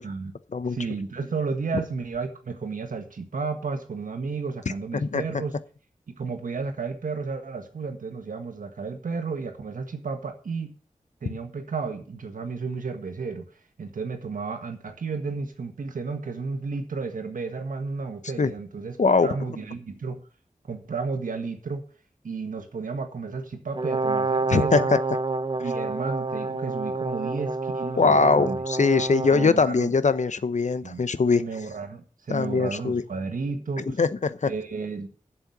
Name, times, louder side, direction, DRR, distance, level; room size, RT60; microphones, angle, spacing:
voice 1, 0.7-5.5 6.2-10.7 11.2-13.4 13.8-19.0 19.2-20.2 20.7-21.8 22.2-24.9 25.6-28.6 29.3-29.9 30.8-31.0 31.3-34.0 34.5-35.2, right 4 dB, 85° right, 1.6 m, -32 dB
Brass instrument, 23.7-29.6, right 3 dB, 40° right, 0.7 m, -28 dB
voice 2, 24.5-25.0 28.0-31.4 32.3-33.0 33.8-34.5, left 4 dB, 60° left, 0.9 m, -22 dB
7.8 x 7.6 x 8.6 m
cardioid pair, 40°, 13 cm